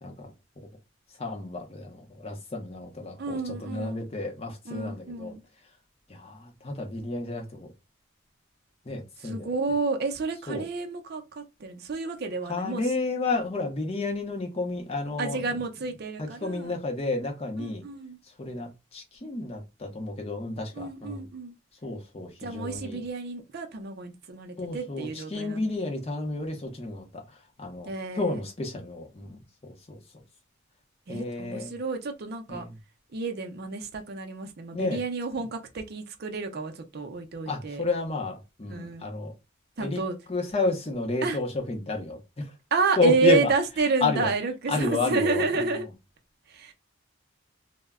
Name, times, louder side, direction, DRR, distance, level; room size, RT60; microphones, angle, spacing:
voice 1, 0.0-0.3 1.2-5.3 6.1-7.7 8.9-9.5 10.5-10.6 12.5-15.4 16.2-17.8 18.4-21.3 21.8-23.0 24.6-30.0 31.1-31.7 32.5-32.7 34.7-35.0 37.5-39.3 39.8-40.0 40.3-42.5 43.0-43.5 44.0-44.3 44.7-45.7, left 3 dB, 30° left, 0.6 m, -31 dB
voice 2, 3.2-4.0 4.7-5.4 9.2-12.9 15.2-16.8 17.6-18.2 20.7-21.5 22.4-25.7 27.9-28.4 31.1-32.7 33.1-37.8 38.7-39.1 39.8-40.2 41.2-41.4 42.7-45.8 46.5-46.7, right 4 dB, 45° right, 0.5 m, -30 dB
2.1 x 2.0 x 3.4 m
head